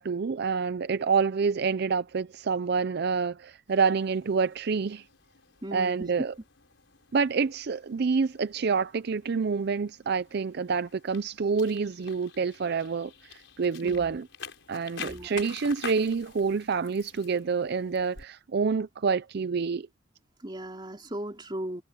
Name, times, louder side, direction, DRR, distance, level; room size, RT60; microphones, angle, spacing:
voice 1, 0.0-5.0 5.7-6.3 7.1-14.3 14.7-19.9, right 5 dB, 60° right, 0.5 m, -27 dB
sound 1, 3.7-18.3, left 6 dB, 80° left, 5.1 m, -48 dB
voice 2, 5.6-6.3 13.8-14.2 15.0-15.4 20.4-21.8, right 1 dB, 25° right, 3.4 m, -37 dB
head